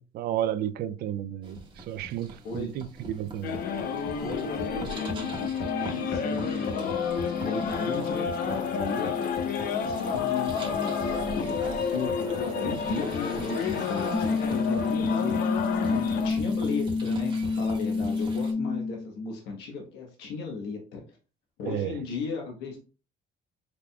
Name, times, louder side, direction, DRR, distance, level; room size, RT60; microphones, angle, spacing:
voice 1, 0.0-3.6 21.6-22.0, right 11 dB, 70° right, 0.4 m, -32 dB
sound 1, 1.4-18.5, right 2 dB, 25° right, 1.3 m, -41 dB
sound 2, 3.4-16.3, left 6 dB, 60° left, 0.7 m, -30 dB
voice 2, 4.2-10.9 11.3-15.5 15.9-21.0 21.6-22.9, left 4 dB, 85° left, 1.3 m, -35 dB
sound 3, 14.1-19.1, left 4 dB, 10° left, 0.5 m, -28 dB
4.9 x 3.5 x 2.3 m
cardioid pair, 110°, 17 cm